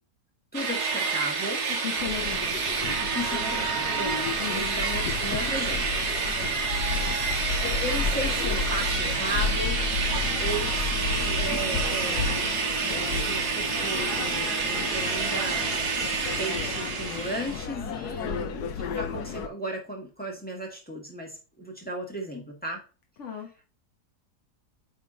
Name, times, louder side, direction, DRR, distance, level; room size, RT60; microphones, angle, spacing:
voice 1, 0.5-1.6 3.0-6.0 7.6-10.0 10.4-12.4 12.9-15.7 16.4-22.8, right 1 dB, 5° left, 0 dB, 1.6 m, -35 dB
sound 1, 0.5-17.7, right 5 dB, 80° right, 2.0 m, -28 dB
voice 2, 1.8-2.5 4.4-4.8 23.2-23.6, left 9 dB, 50° left, 2 dB, 1.3 m, -35 dB
sound 2, 2.0-19.5, left 5 dB, 80° left, 1.3 m, -33 dB
9.2 x 3.7 x 3.7 m, 0.33 s
omnidirectional pair, 1.7 m